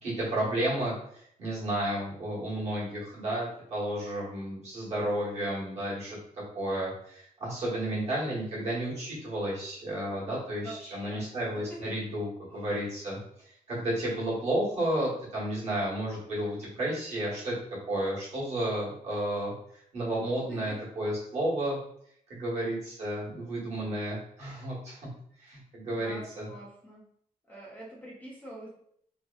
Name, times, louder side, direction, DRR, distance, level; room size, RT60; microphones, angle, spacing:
voice 1, 0.0-6.2 6.5-17.5 17.8-19.5 19.9-21.8 22.3-25.1 25.4-26.5, right 1 dB, 50° right, -7 dB, 1.1 m, -32 dB
voice 2, 10.6-11.8 20.5-20.8 25.5-25.6 25.9-27.1 27.5-28.7, right 1 dB, 10° left, -6 dB, 0.4 m, -45 dB
2.7 x 2.0 x 2.3 m, 0.68 s
wide cardioid pair, 175°, 14 cm